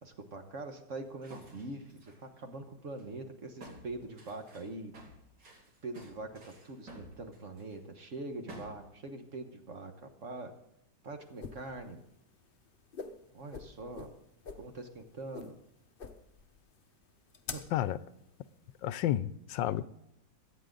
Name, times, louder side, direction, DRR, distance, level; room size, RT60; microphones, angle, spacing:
voice 1, 0.0-4.9 5.8-9.9 10.2-10.5 11.0-12.0 13.3-14.1 14.6-15.6 17.5-17.6, right 2 dB, 45° right, 1.5 m, -43 dB
sound 1, 1.2-2.2 3.0-3.1 3.6-7.7 8.5-8.9, right 2 dB, 75° right, 3.4 m, -51 dB
sound 2, 11.2-18.9, left 5 dB, 45° left, 0.8 m, -47 dB
voice 2, 18.8-19.8, left 12 dB, 85° left, 1.3 m, -31 dB
22.5 x 8.4 x 3.9 m
omnidirectional pair, 1.9 m